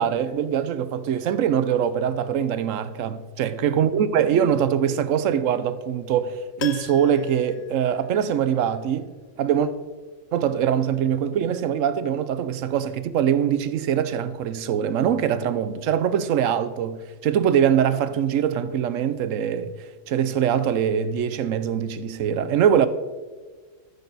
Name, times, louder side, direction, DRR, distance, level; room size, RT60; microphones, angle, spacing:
voice 1, 0.0-9.1 9.4-9.7 10.3-19.7 20.1-22.9, right 9 dB, 80° right, 1.0 m, -23 dB
Piano, 6.6-8.7 9.0-9.1, left 8 dB, 65° left, 0.9 m, -38 dB
14.0 x 7.0 x 4.0 m
omnidirectional pair, 1.3 m